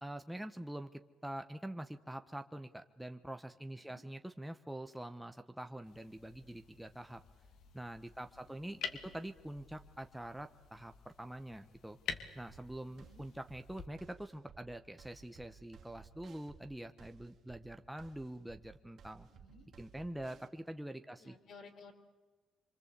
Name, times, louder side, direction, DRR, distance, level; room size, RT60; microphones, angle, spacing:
voice 1, 0.0-7.2 7.7-12.0 12.3-19.3 19.8-21.4, right 1 dB, 5° right, 7 dB, 1.1 m, -45 dB
sound 1, 5.8-13.9, left 7 dB, 80° left, 2.5 m, -49 dB
voice 2, 8.3-9.2 12.8-13.3 19.3-19.7 21.2-21.9, left 4 dB, 65° left, 4 dB, 4.5 m, -58 dB
sound 2, 12.5-20.5, right 6 dB, 65° right, 2.3 m, -58 dB
26.0 x 24.5 x 8.3 m, 1.3 s
cardioid pair, 90°, 0 cm